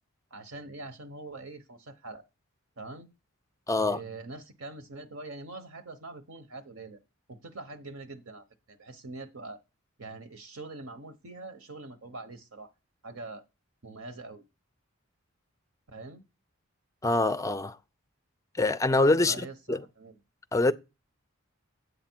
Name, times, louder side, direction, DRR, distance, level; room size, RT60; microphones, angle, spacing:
voice 1, 0.3-2.2 2.8-3.1 3.8-7.0 7.3-9.6 10.0-12.7 13.0-13.4 13.8-14.4 15.9-16.2 19.2-20.2, right 2 dB, 70° right, 1.0 m, -43 dB
voice 2, 3.7-4.0 17.0-17.8 18.6-19.3 19.7-19.8 20.5-20.7, left 2 dB, 15° left, 0.4 m, -24 dB
10.0 x 8.1 x 4.5 m
head